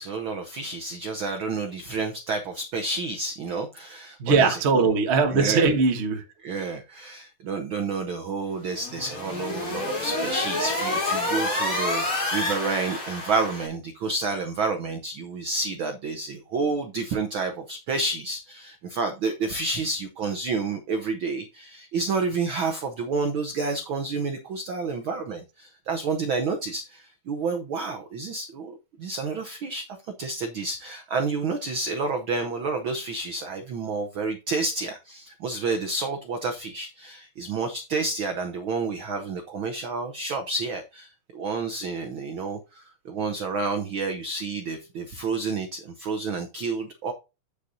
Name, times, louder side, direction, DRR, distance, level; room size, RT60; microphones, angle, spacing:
voice 1, 0.0-4.8 5.3-5.7 6.4-29.8 30.2-47.1, right 4 dB, 75° right, 1.1 m, -30 dB
voice 2, 4.2-6.2, right 4 dB, 60° right, 0.6 m, -20 dB
sound 1, 8.7-13.7, left 2 dB, 45° left, 4.6 m, -28 dB
8.4 x 8.3 x 2.7 m
omnidirectional pair, 3.4 m